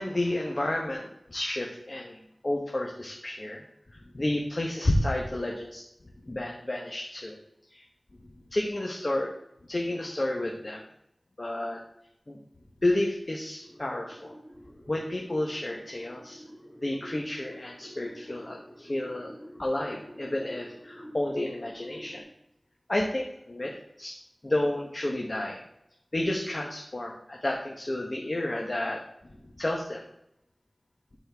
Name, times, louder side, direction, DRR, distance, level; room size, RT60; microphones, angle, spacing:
voice 1, 0.0-2.2 2.4-3.6 3.9-5.8 6.2-7.4 7.7-7.8 8.5-9.3 9.6-10.8 11.4-11.8 12.3-12.4 12.8-14.3 14.9-16.4 16.8-22.2 22.9-24.2 24.4-25.6 26.1-29.0 29.6-30.0, left 1 dB, 45° left, 0 dB, 1.1 m, -31 dB
sound 1, 13.6-22.2, equal, 15° left, 1.7 m, -49 dB
12.5 x 4.3 x 3.5 m, 0.78 s
wide cardioid pair, 65°, 0 cm